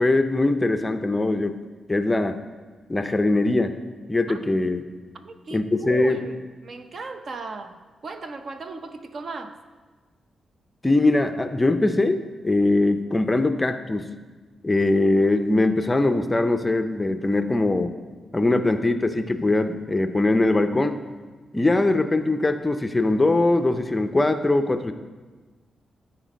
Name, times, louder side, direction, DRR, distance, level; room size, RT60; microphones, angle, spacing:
voice 1, 0.0-1.6 1.9-2.4 2.9-3.8 4.1-4.8 5.5-6.2 10.8-14.1 14.6-17.9 18.3-21.0 21.5-24.9, left 2 dB, 15° left, 8 dB, 0.5 m, -21 dB
voice 2, 5.1-9.6, right 3 dB, 45° right, 8 dB, 0.6 m, -37 dB
13.0 x 4.4 x 5.2 m, 1.4 s
cardioid pair, 115°, 0 cm